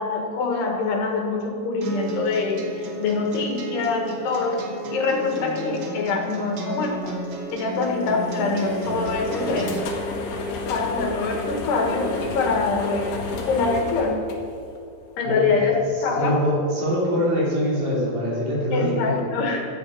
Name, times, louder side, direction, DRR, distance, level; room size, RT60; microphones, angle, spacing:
voice 1, 0.0-4.6 4.9-7.2 7.5-9.7 10.3-10.4 10.7-13.1 13.5-14.2 15.2-15.8 16.0-16.4 18.7-19.7, left 4 dB, 85° left, 1 dB, 3.7 m, -24 dB
sound 1, 1.8-9.8, right 1 dB, 75° right, 1.2 m, -33 dB
sound 2, 7.7-15.0, left 2 dB, 65° left, 2.8 m, -31 dB
voice 2, 15.2-15.6 16.2-19.1, equal, 55° right, -6 dB, 4.6 m, -23 dB
14.5 x 9.4 x 5.3 m, 2.5 s
omnidirectional pair, 4.6 m